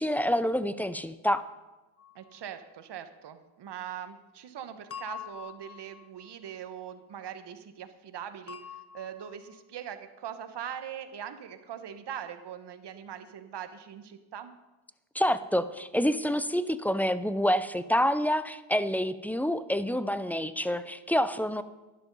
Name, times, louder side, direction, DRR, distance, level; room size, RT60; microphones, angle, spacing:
voice 1, 0.0-1.4 15.1-21.6, equal, 5° left, 13 dB, 0.4 m, -27 dB
sound 1, 2.0-2.4 4.9-6.5 8.5-9.6, left 8 dB, 30° left, 1.1 m, -45 dB
voice 2, 2.1-14.5, right 9 dB, 55° right, 9 dB, 1.2 m, -41 dB
11.5 x 11.0 x 5.4 m, 1.1 s
cardioid pair, 100°, 49 cm